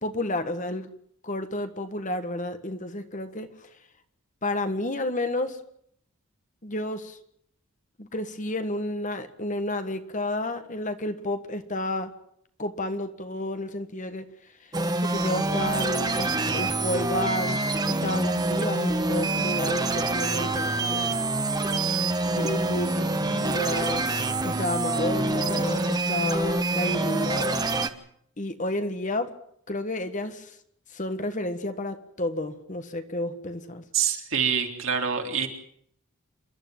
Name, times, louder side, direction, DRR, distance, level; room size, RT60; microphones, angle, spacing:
voice 1, 0.0-0.9 1.2-3.7 4.4-5.6 6.6-7.2 8.0-12.1 12.6-14.3 14.6-14.7 15.0-21.1 22.0-27.7 28.4-29.3 29.7-30.6 30.9-33.8, left 1 dB, 35° left, 9 dB, 1.6 m, -31 dB
sound 1, 14.7-27.9, right 2 dB, 20° right, 1.1 m, -26 dB
voice 2, 33.9-35.5, right 7 dB, 65° right, 3 dB, 3.6 m, -26 dB
27.5 x 12.0 x 9.2 m, 0.68 s
head